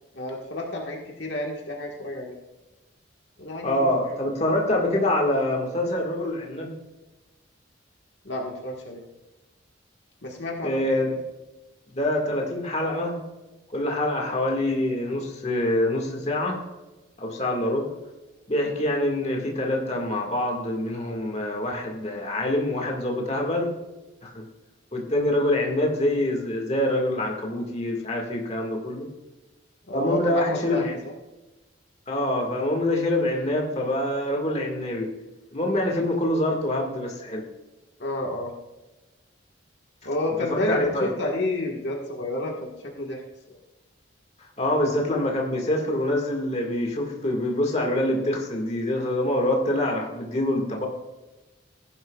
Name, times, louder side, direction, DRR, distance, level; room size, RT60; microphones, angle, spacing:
voice 1, 0.1-2.3 3.4-4.1 8.2-9.0 10.2-10.8 29.9-30.9 38.0-38.5 40.0-42.7 43.0-43.2 43.5-43.6, left 1 dB, 60° left, -1 dB, 1.5 m, -30 dB
voice 2, 3.6-6.7 10.6-11.2 12.0-13.2 13.7-16.6 17.2-17.9 18.5-23.7 24.2-24.4 24.9-29.1 29.9-31.0 32.1-35.1 35.5-37.4 40.5-41.1 44.6-50.9, left 1 dB, 35° left, 0 dB, 1.8 m, -25 dB
16.0 x 11.0 x 2.4 m, 1.1 s
head